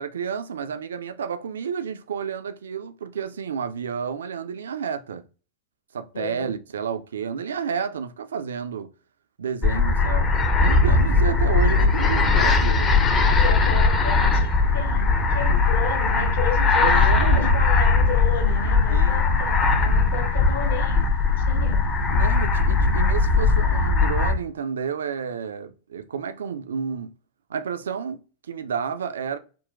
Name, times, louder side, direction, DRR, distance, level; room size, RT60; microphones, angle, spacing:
voice 1, 0.0-5.2 5.9-8.9 9.4-10.3 10.6-12.9 16.8-17.6 18.9-19.2 22.1-27.1 27.5-28.2 28.5-29.4, right 7 dB, 65° right, 0.3 m, -30 dB
voice 2, 6.1-6.5 13.4-21.0 21.5-21.9, left 6 dB, 60° left, 0.8 m, -33 dB
sound 1, 9.6-24.4, left 4 dB, 25° left, 0.5 m, -20 dB
sound 2, 10.8-23.9, left 3 dB, 80° left, 0.5 m, -28 dB
3.7 x 2.2 x 2.4 m
figure-of-eight pair, 90°, 0 cm